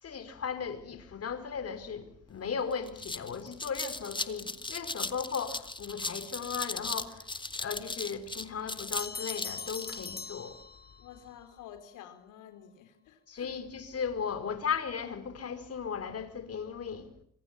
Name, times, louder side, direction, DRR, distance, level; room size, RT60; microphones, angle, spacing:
voice 1, 0.0-10.6 13.3-17.1, left 6 dB, 50° left, 4.8 m, -36 dB
sound 1, 2.3-2.4 2.7-10.1, left 2 dB, 15° left, 2.0 m, -37 dB
Bell, 9.0-11.2, left 5 dB, 30° left, 1.5 m, -41 dB
voice 2, 11.0-13.5, left 10 dB, 85° left, 4.1 m, -50 dB
26.5 x 25.5 x 7.5 m
cardioid pair, 90°, 30 cm